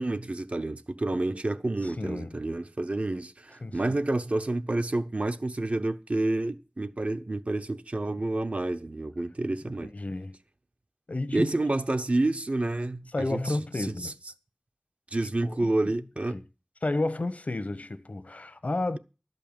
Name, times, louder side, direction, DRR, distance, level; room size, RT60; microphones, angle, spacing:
voice 1, 0.0-9.9 11.3-13.6 14.0-14.1 15.1-16.4, right 2 dB, 65° right, 0.8 m, -29 dB
voice 2, 1.8-2.4 3.6-3.8 9.6-10.3 11.1-11.5 13.1-14.1 15.4-15.9 16.3-16.4 16.8-19.0, left 2 dB, 85° left, 0.9 m, -32 dB
12.0 x 5.5 x 8.8 m
wide cardioid pair, 45°, 2 cm